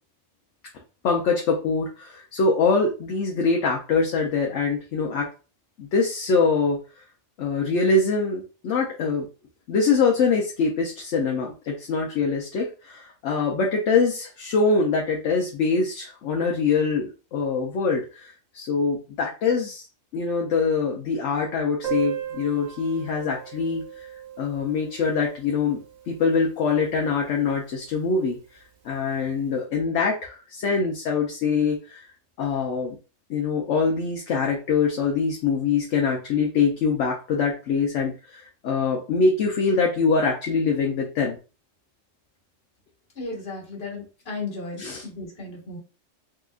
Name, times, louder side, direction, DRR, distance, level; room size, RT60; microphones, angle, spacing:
voice 1, 1.0-5.3 5.8-6.8 7.4-9.3 9.7-19.8 20.1-24.1 24.4-28.4 28.8-32.0 32.4-33.0 33.3-41.4 44.8-45.1, left 4 dB, 70° left, 0 dB, 0.9 m, -24 dB
Piano, 21.8-27.2 27.5-27.6 27.8-27.9 28.3-28.4 29.1-29.3, right 10 dB, 45° right, 0.6 m, -37 dB
voice 2, 43.2-45.8, left 3 dB, 50° left, -2 dB, 1.5 m, -35 dB
3.7 x 2.8 x 2.4 m, 0.34 s
omnidirectional pair, 1.4 m